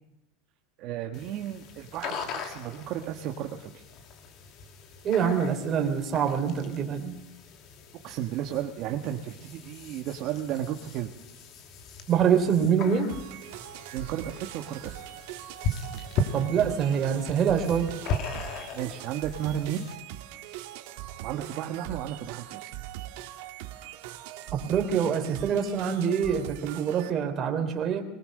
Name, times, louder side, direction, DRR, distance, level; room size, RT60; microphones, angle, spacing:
voice 1, 0.8-3.8 8.0-11.1 13.9-15.0 18.7-19.9 21.2-22.7, right 11 dB, 50° right, 3 dB, 1.5 m, -33 dB
sound 1, 1.1-20.0, left 3 dB, 50° left, 2.7 m, -38 dB
voice 2, 5.0-7.1 12.1-13.1 16.3-17.9 24.5-28.0, right 7 dB, 35° right, 5 dB, 3.4 m, -25 dB
sound 2, 13.1-27.1, right 14 dB, 70° right, 2.0 m, -41 dB
21.0 x 19.5 x 6.7 m, 0.88 s
supercardioid pair, 130°, 0 cm